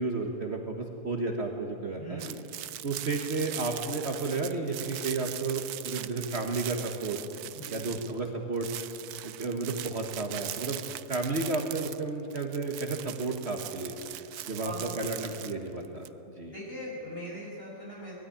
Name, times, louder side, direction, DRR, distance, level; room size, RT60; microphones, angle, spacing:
voice 1, 0.0-2.2 2.8-7.2 7.7-8.7 9.2-10.8 11.1-14.0 14.5-16.1 16.4-16.5, right 3 dB, 45° right, 3 dB, 1.5 m, -32 dB
voice 2, 1.9-2.4 7.5-7.9 14.6-15.0 16.4-18.1, equal, 35° left, -4 dB, 6.6 m, -40 dB
sound 1, 2.2-8.3 8.5-16.1, right 12 dB, 75° right, 1.1 m, -40 dB
20.0 x 13.0 x 10.0 m, 2.7 s
omnidirectional pair, 1.7 m